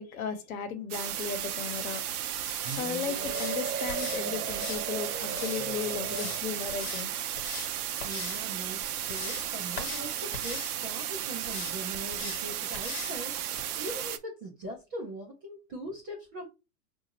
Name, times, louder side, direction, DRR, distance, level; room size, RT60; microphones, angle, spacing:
voice 1, 0.0-2.0 2.4-7.2, left 7 dB, 60° left, 1.0 m, -36 dB
sound 1, 0.9-14.2, right 11 dB, 70° right, 0.6 m, -34 dB
sound 2, 2.4-2.8 3.2-3.5 3.9-4.2 4.5-5.6 6.1-6.4 6.7-7.1 7.3-7.7 8.0-8.4 8.8-9.5 9.8-10.1 10.3-10.7 11.4-11.7 12.1-12.4 12.7-13.2 13.6-13.7, left 5 dB, 35° left, 1.2 m, -41 dB
sound 3, 2.6-6.8, right 5 dB, 90° right, 1.0 m, -37 dB
voice 2, 7.7-16.5, right 1 dB, 20° right, 0.3 m, -41 dB
5.0 x 2.6 x 2.8 m
hypercardioid pair, 130°, 47 cm